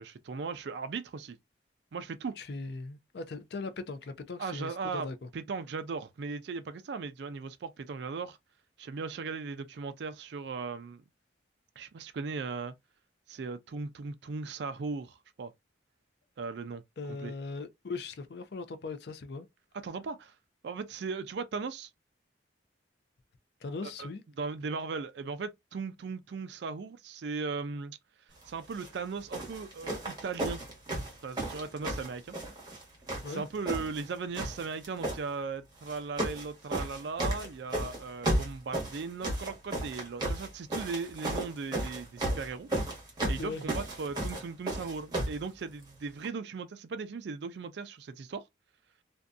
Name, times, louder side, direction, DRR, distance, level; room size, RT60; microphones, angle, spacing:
voice 1, 0.0-1.4 1.9-2.4 4.4-5.1 5.3-8.4 8.8-11.0 11.8-12.7 13.3-15.5 16.4-16.8 17.1-17.3 19.8-20.3 20.6-21.9 23.8-24.1 24.4-28.0 28.5-30.6 31.2-32.3 33.3-42.7 43.3-48.4, right 4 dB, 65° right, 0.4 m, -38 dB
voice 2, 2.4-5.3 17.0-19.5 23.6-24.2 33.2-33.4 43.4-43.6, left 3 dB, 60° left, 0.4 m, -39 dB
sound 1, 28.7-28.9 29.3-32.8 33.1-34.1 34.3-35.2 35.8-36.5 36.7-45.4 46.2-46.3, right 1 dB, 20° right, 1.0 m, -34 dB
2.6 x 2.2 x 2.4 m
head